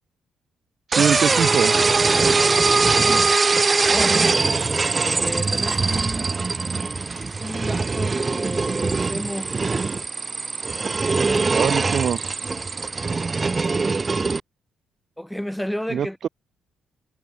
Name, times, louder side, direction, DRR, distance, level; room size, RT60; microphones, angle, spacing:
sound 1, 0.9-14.4, right 4 dB, 30° right, 1.3 m, -21 dB
voice 1, 0.9-1.7 11.5-12.4 15.9-16.3, right 8 dB, 55° right, 1.8 m, -23 dB
voice 2, 2.4-2.9 3.9-4.2 5.0-6.3 6.6-9.5 11.1-11.6 15.2-16.3, equal, 5° left, 6.4 m, -32 dB
cardioid pair, 90°, 0 cm